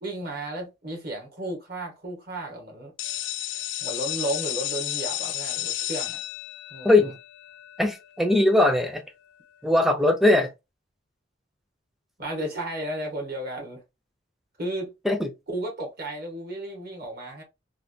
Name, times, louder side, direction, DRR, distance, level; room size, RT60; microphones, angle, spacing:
voice 1, 0.0-2.9 3.8-6.2 6.7-7.1 12.2-13.8 14.6-14.9 15.5-17.4, right 1 dB, 55° right, 1.3 m, -33 dB
sound 1, 3.0-8.6, left 14 dB, 65° left, 0.4 m, -33 dB
voice 2, 6.8-7.2 7.8-9.0 9.6-10.5 15.0-15.3, left 2 dB, ahead, 0.5 m, -20 dB
3.3 x 2.2 x 2.6 m
head